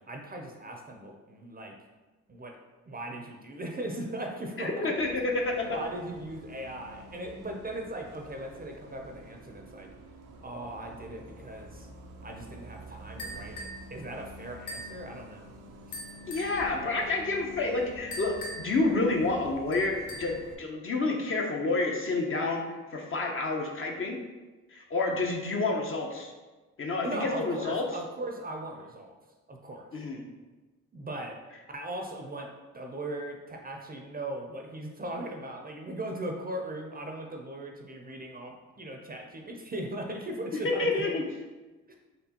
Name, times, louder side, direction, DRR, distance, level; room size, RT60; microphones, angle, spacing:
voice 1, 0.0-1.8 2.3-2.6 2.9-4.9 5.7-9.9 10.4-11.9 12.2-15.5 27.0-29.1 29.5-29.8 30.9-31.4 31.7-41.0, right 1 dB, 30° right, 2 dB, 0.5 m, -38 dB
voice 2, 4.6-5.8 16.3-24.2 24.7-26.3 26.8-27.9 29.9-30.2 40.6-41.2, left 3 dB, 40° left, 1 dB, 0.7 m, -29 dB
Bus, 4.9-20.5, right 1 dB, 90° right, 0.5 m, -48 dB
sound 1, 13.2-13.9 14.7-15.0 15.9-16.6 18.1-18.8 19.7-20.4, equal, 70° left, 0.9 m, -41 dB
4.2 x 3.1 x 2.9 m, 1.2 s
cardioid pair, 75°, 32 cm